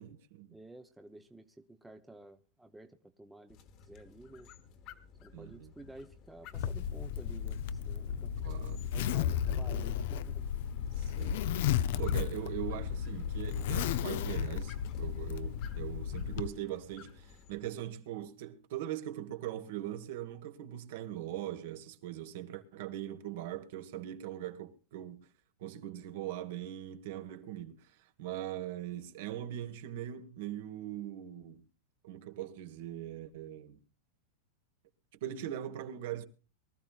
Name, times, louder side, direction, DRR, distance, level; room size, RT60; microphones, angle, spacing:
voice 1, 0.0-0.6 5.3-5.7 8.4-8.9 9.2-9.3 10.9-11.4 11.8-25.3 25.6-27.9 28.2-31.7 32.0-33.8 35.2-36.3, right 12 dB, 60° right, 1.5 m, -41 dB
voice 2, 0.5-4.5 5.2-8.3 8.9-10.5, right 2 dB, 5° right, 0.8 m, -52 dB
sound 1, 3.5-17.7, left 7 dB, 35° left, 1.4 m, -56 dB
Zipper (clothing), 6.5-16.5, left 9 dB, 60° left, 0.6 m, -34 dB
23.5 x 13.5 x 2.4 m
supercardioid pair, 155°, 0 cm